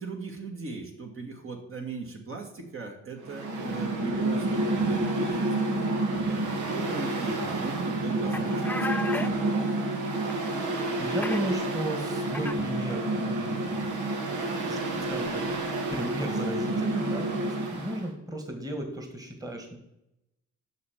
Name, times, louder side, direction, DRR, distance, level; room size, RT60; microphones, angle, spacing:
voice 1, 0.0-5.6 6.1-9.5, right 3 dB, 45° right, 2 dB, 2.0 m, -38 dB
Mechanical fan, 3.2-18.1, right 2 dB, 75° right, 1.8 m, -29 dB
sound 1, 8.3-9.3 10.3-10.4 10.6-11.4 12.3-12.5, left 2 dB, 5° left, 0.5 m, -34 dB
voice 2, 11.0-15.4 15.9-19.8, right 1 dB, 10° right, 3 dB, 1.8 m, -35 dB
6.7 x 6.6 x 7.2 m, 0.85 s
cardioid pair, 90°, 30 cm